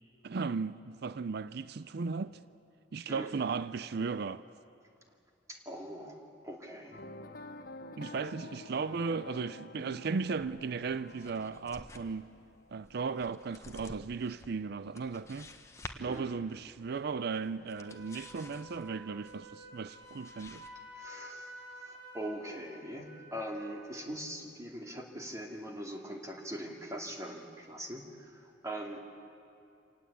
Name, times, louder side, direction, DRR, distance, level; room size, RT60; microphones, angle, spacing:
voice 1, 0.2-2.4 2.9-4.4 8.0-12.3 12.7-15.5 16.0-20.6, right 5 dB, 60° right, 0.5 m, -36 dB
voice 2, 3.1-3.4 5.5-7.0 16.1-16.4 20.9-29.0, right 1 dB, 15° right, 2.5 m, -42 dB
sound 1, 6.9-13.2, left 2 dB, 50° left, 1.0 m, -49 dB
sound 2, 10.2-20.7, left 2 dB, 15° left, 1.2 m, -52 dB
Wind instrument woodwind instrument, 17.7-24.1, equal, 85° right, 4.3 m, -51 dB
27.5 x 18.5 x 8.5 m
head